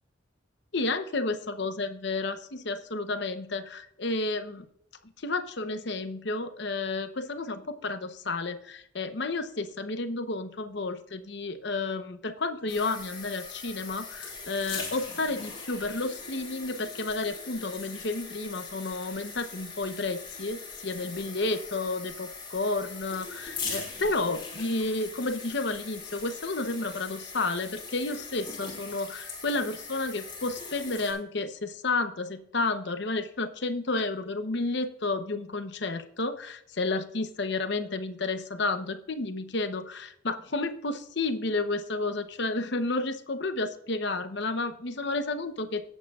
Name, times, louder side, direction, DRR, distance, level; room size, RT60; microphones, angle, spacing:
voice 1, 0.7-4.6 5.2-45.8, left 3 dB, 55° left, 10 dB, 0.8 m, -31 dB
sound 1, 12.7-31.1, left 4 dB, 25° left, 3.5 m, -41 dB
18.0 x 8.4 x 2.4 m, 0.73 s
head